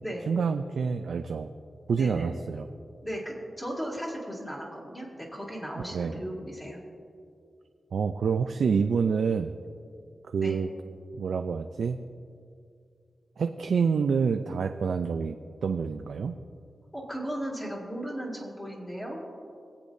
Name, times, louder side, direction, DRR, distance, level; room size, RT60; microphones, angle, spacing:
voice 1, 0.3-1.5 1.9-2.7 5.9-6.2 7.9-9.5 10.3-10.7 11.2-12.0 13.4-15.4 15.6-16.4, right 5 dB, 80° right, 6 dB, 0.4 m, -27 dB
voice 2, 1.9-2.3 3.0-6.8 10.4-10.6 16.9-19.2, equal, 15° left, -5 dB, 2.5 m, -36 dB
23.5 x 8.3 x 2.7 m, 2.4 s
wide cardioid pair, 100°, 0 cm